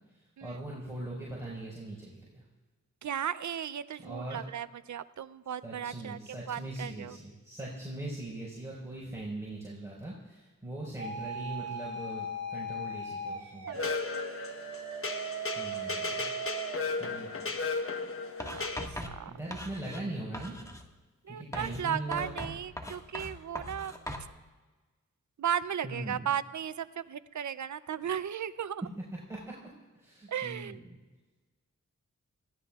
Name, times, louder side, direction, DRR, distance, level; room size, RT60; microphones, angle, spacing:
voice 1, 0.1-2.5 4.0-4.4 5.6-13.8 15.5-16.2 17.0-17.5 19.3-20.6 21.3-22.5 25.8-26.3 29.3-29.6 29.9-31.0, right 1 dB, 10° right, -6 dB, 4.7 m, -41 dB
voice 2, 3.0-6.2 6.5-7.1 13.7-14.4 18.4-19.3 21.3-23.9 25.4-28.8 30.3-30.8, right 9 dB, 65° right, 14 dB, 0.6 m, -36 dB
sound 1, 11.0-16.8, right 2 dB, 50° right, 2.0 m, -38 dB
sound 2, 13.7-18.9, left 4 dB, 45° left, 1.1 m, -35 dB
Writing, 18.4-20.1 20.3-20.9 21.5-24.3, left 1 dB, 10° left, 1.7 m, -41 dB
26.5 x 17.5 x 2.4 m, 1.3 s
cardioid pair, 70°, 31 cm